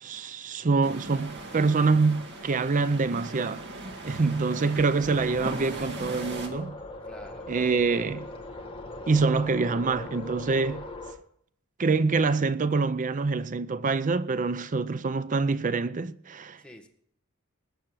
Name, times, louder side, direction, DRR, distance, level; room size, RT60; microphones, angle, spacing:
voice 1, 0.0-3.7 4.0-6.7 7.5-8.3 9.1-10.8 11.8-16.6, right 4 dB, 35° right, 0.5 m, -25 dB
sound 1, 0.8-6.5, right 2 dB, 50° right, 2.2 m, -39 dB
sound 2, 3.6-7.3, left 1 dB, 80° left, 2.6 m, -51 dB
voice 2, 4.0-4.4 7.0-7.5 16.6-16.9, left 1 dB, 5° left, 1.6 m, -49 dB
sound 3, 4.5-11.1, left 2 dB, 25° left, 1.6 m, -40 dB
20.0 x 7.3 x 7.5 m
head